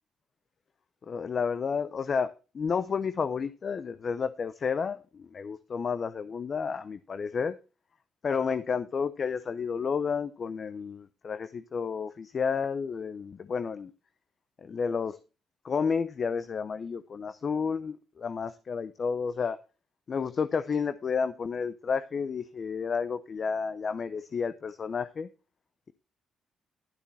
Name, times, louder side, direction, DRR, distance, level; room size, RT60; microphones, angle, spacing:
voice 1, 1.1-7.6 8.2-13.9 14.6-15.2 15.6-19.6 20.1-25.3, left 6 dB, 45° left, 0.6 m, -31 dB
11.5 x 7.0 x 4.2 m
cardioid pair, 90°, 0 cm